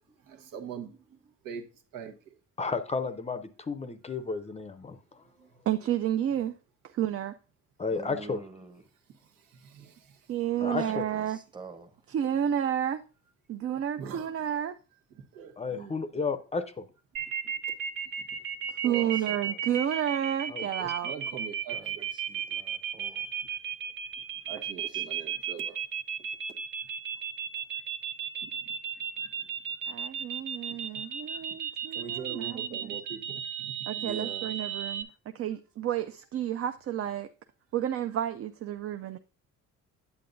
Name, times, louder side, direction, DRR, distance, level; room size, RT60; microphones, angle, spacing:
voice 1, 0.2-1.6 1.9-2.4 4.0-4.4 5.1-5.6 9.1-10.3 10.7-10.8 14.0-14.3 15.1-16.2 17.2-17.5 18.2-18.4 18.8-19.4 21.0-22.1 23.4-23.6 24.2-25.8 26.8-26.9 27.7-27.8 28.4-28.7 28.9-30.0 30.7-31.6 31.9-33.7, right 7 dB, 90° right, 1.4 m, -44 dB
voice 2, 2.6-5.0 7.8-8.4 10.6-11.1 15.6-16.9 20.5-20.9, left 4 dB, 20° left, 0.5 m, -32 dB
voice 3, 5.7-6.5 6.9-7.3 10.3-11.4 12.1-13.0 13.5-14.8 18.8-21.1 29.9-32.7 33.9-35.1 35.3-37.3 37.7-39.2, right 10 dB, 45° right, 0.4 m, -31 dB
voice 4, 7.9-8.8 10.6-12.0 19.0-19.6 21.7-23.3 24.9-25.0 33.9-34.5, right 3 dB, 15° right, 0.9 m, -46 dB
sound 1, 17.1-35.0, right 8 dB, 70° right, 0.8 m, -34 dB
8.7 x 8.4 x 2.6 m
cardioid pair, 150°, 32 cm